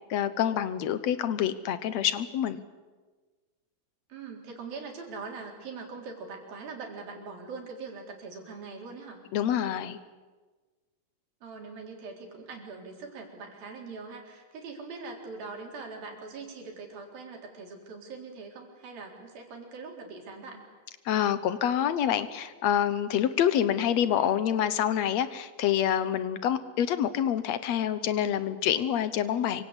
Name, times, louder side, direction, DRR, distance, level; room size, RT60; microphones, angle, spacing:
voice 1, 0.1-2.6 9.3-10.0 21.1-29.7, left 10 dB, 65° left, 13 dB, 1.8 m, -27 dB
voice 2, 4.1-9.2 11.4-20.6, right 4 dB, 85° right, 1 dB, 5.6 m, -42 dB
27.0 x 24.5 x 8.2 m, 1.3 s
omnidirectional pair, 4.1 m